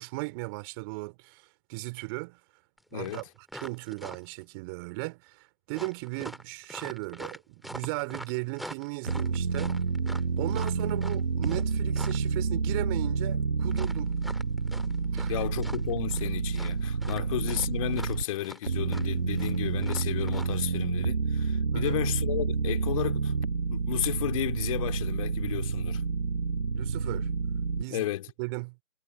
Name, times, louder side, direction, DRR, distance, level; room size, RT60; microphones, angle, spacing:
voice 1, 0.0-2.4 2.9-3.2 3.6-9.8 10.4-14.1 15.1-15.4 17.2-17.3 21.7-22.0 26.8-27.3 27.8-28.0 28.4-28.8, right 27 dB, 15° right, 2.7 m, -36 dB
sound 1, 2.8-2.9 3.0-4.4 5.7-12.3 13.7-15.3 15.6-16.3 16.5-20.5, equal, ahead, 2.6 m, -43 dB
voice 2, 2.9-3.2 15.3-23.3 23.7-26.0 27.9-28.3, left 14 dB, 25° left, 2.8 m, -33 dB
sound 2, 9.1-18.2 18.7-27.8, right 5 dB, 45° right, 0.4 m, -29 dB
figure-of-eight pair, 145°, 43 cm